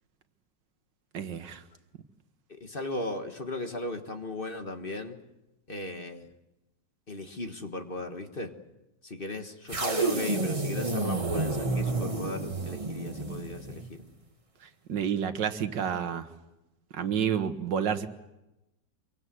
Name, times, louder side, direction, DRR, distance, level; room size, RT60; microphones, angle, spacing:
voice 1, 1.1-1.6 14.9-16.3 16.9-18.1, right 8 dB, 80° right, 1.9 m, -29 dB
voice 2, 2.6-5.2 5.7-6.3 7.1-8.5 9.0-13.8, left 2 dB, 30° left, 1.7 m, -36 dB
sound 1, 9.7-14.0, right 3 dB, 20° right, 1.5 m, -30 dB
25.5 x 23.5 x 7.8 m
omnidirectional pair, 1.9 m